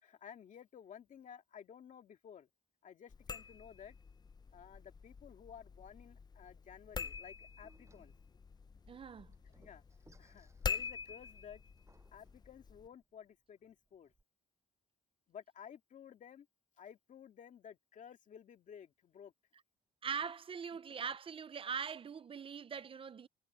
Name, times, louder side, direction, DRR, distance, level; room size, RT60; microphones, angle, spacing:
voice 1, 0.0-2.5 2.8-4.0 4.5-8.1 9.4-9.8 10.2-11.6 12.1-14.1 15.3-16.5 16.8-19.3, left 8 dB, 50° left, 2.2 m, -54 dB
sound 1, 3.1-12.9, left 5 dB, 25° left, 0.6 m, -46 dB
Door, 7.6-14.2, right 3 dB, 20° right, 7.9 m, -70 dB
voice 2, 8.9-9.3 20.0-23.3, right 6 dB, 35° right, 0.7 m, -42 dB
cardioid pair, 115°, 16 cm